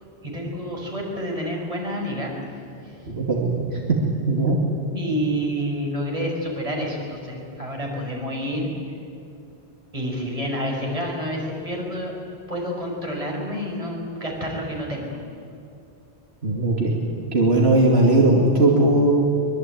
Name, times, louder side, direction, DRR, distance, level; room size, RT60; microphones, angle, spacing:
voice 1, 0.2-2.3 2.8-3.0 4.9-8.7 9.9-12.2 12.5-15.2, equal, 30° right, -1 dB, 5.5 m, -28 dB
voice 2, 3.1-3.8 4.3-4.6 16.4-19.1, right 2 dB, 65° right, -2 dB, 2.8 m, -19 dB
24.0 x 22.5 x 9.3 m, 2.5 s
omnidirectional pair, 1.1 m